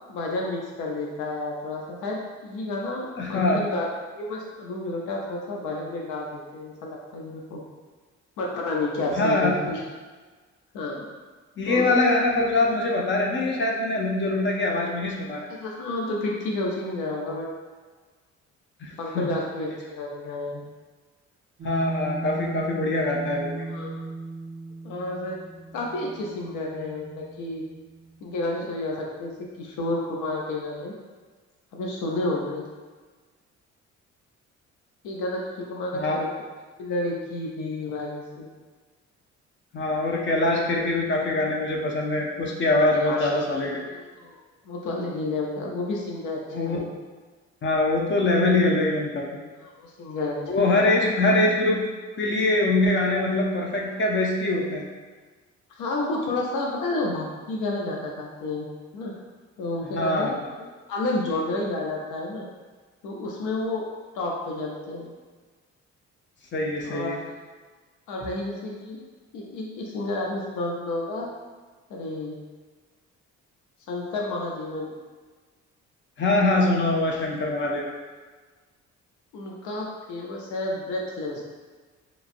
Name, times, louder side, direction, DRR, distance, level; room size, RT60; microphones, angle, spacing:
voice 1, 0.1-3.8 4.1-7.6 8.4-9.8 10.7-11.0 11.7-11.9 15.6-17.5 19.0-20.6 23.7-24.0 24.8-25.4 25.7-27.6 28.2-29.3 29.6-30.9 31.7-32.6 35.0-36.4 36.8-38.5 43.0-43.3 43.9-44.4 44.7-46.4 46.7-46.9 49.6-50.4 50.6-50.8 55.7-58.7 58.9-59.1 59.6-60.3 60.6-62.5 63.0-63.8 64.1-65.1 66.8-67.3 68.1-69.0 69.3-71.3 71.9-72.4 73.9-75.0 79.3-81.4, left 2 dB, 85° left, -2 dB, 0.5 m, -30 dB
voice 2, 3.2-3.6 9.2-9.5 11.6-15.5 18.8-19.4 21.6-23.6 35.9-36.2 39.7-43.8 46.5-46.8 47.6-49.3 50.5-51.8 52.2-54.8 59.9-60.3 66.5-67.2 76.2-77.9, left 2 dB, 40° left, -1 dB, 0.5 m, -23 dB
sound 1, 21.6-28.3, right 3 dB, 30° right, 0.4 m, -36 dB
3.0 x 2.5 x 2.5 m, 1.4 s
cardioid pair, 90°, 30 cm